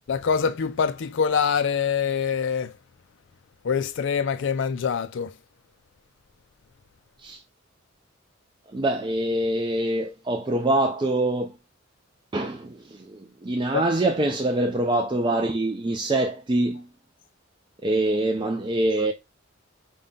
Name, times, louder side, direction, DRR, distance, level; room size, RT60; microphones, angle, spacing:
voice 1, 0.1-2.7 3.6-5.3 13.7-13.8, left 6 dB, 60° left, 0.4 m, -24 dB
voice 2, 8.7-11.6 12.3-16.9 17.8-19.1, right 1 dB, 25° right, 0.4 m, -24 dB
5.3 x 2.3 x 3.7 m
head